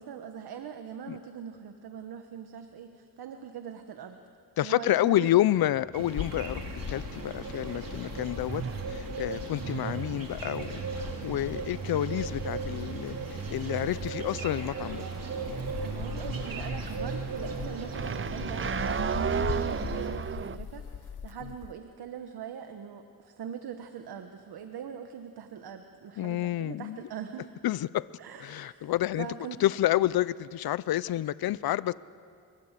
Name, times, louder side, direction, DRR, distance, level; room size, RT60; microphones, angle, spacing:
voice 1, 0.0-4.2 4.6-5.3 6.5-6.6 15.8-27.5 28.2-29.6, right 8 dB, 90° right, 7 dB, 1.3 m, -42 dB
voice 2, 4.6-8.6 8.9-13.2 13.5-15.1 26.2-27.0 27.6-28.1 28.4-29.3 29.6-31.9, left 14 dB, 75° left, 19 dB, 0.6 m, -29 dB
sound 1, 5.5-20.6, right 7 dB, 35° right, 0.6 m, -36 dB
sound 2, 5.9-20.1, right 4 dB, 65° right, 4.2 m, -39 dB
sound 3, 6.2-21.7, left 7 dB, 55° left, 1.0 m, -41 dB
28.5 x 23.5 x 7.5 m, 2.4 s
cardioid pair, 75°, 37 cm